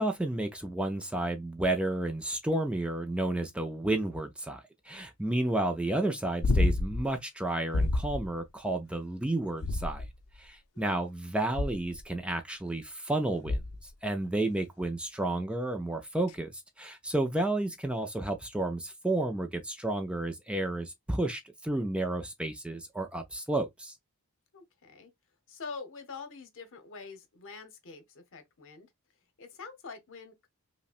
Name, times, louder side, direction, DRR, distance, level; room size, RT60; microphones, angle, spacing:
voice 1, 0.0-10.0 10.4-23.9, right 2 dB, 5° right, 0.4 m, -31 dB
sound 1, 6.4-7.1 7.7-8.3 9.6-10.3 11.5-12.0 13.5-13.9 16.3-16.4, left 2 dB, 75° left, 0.5 m, -28 dB
voice 2, 24.5-25.1 25.5-28.9 29.4-30.5, left 4 dB, 60° left, 0.9 m, -45 dB
5.4 x 2.1 x 2.4 m
head